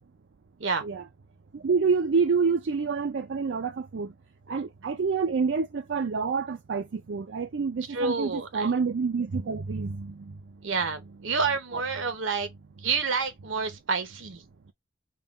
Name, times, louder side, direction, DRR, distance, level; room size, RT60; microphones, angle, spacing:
voice 1, 1.5-4.1 4.5-10.3, right 5 dB, 60° right, 0.4 m, -27 dB
voice 2, 7.9-8.7 10.6-12.5 12.8-14.4, right 5 dB, 75° right, 1.0 m, -28 dB
3.7 x 2.3 x 4.1 m
head